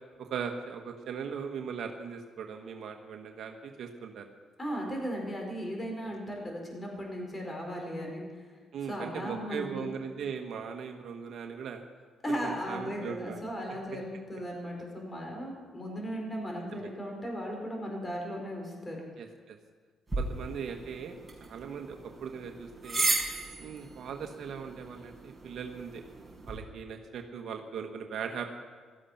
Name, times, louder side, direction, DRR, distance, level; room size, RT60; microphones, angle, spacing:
voice 1, 0.2-4.3 8.7-11.8 12.3-13.5 16.7-16.9 19.2-19.6 20.2-23.1 23.6-26.0 26.5-28.4, right 6 dB, 65° right, 3 dB, 1.3 m, -39 dB
voice 2, 4.6-8.2 8.9-9.8 12.2-19.0, equal, 20° left, 0 dB, 4.7 m, -36 dB
sound 1, 20.1-26.6, right 2 dB, 10° right, 5.9 m, -36 dB
17.0 x 13.5 x 5.9 m, 1.5 s
cardioid pair, 90°, 0 cm